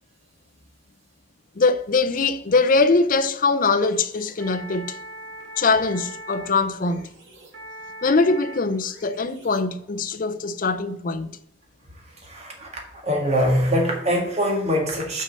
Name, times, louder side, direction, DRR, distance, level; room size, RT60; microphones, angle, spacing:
voice 1, 1.6-5.0 5.6-7.1 8.0-11.4, left 3 dB, 45° left, 0.5 m, -22 dB
sound 1, 2.2-10.0, right 1 dB, 70° right, 2.0 m, -42 dB
voice 2, 12.2-15.2, equal, 35° right, 1.9 m, -23 dB
6.3 x 5.4 x 5.3 m
head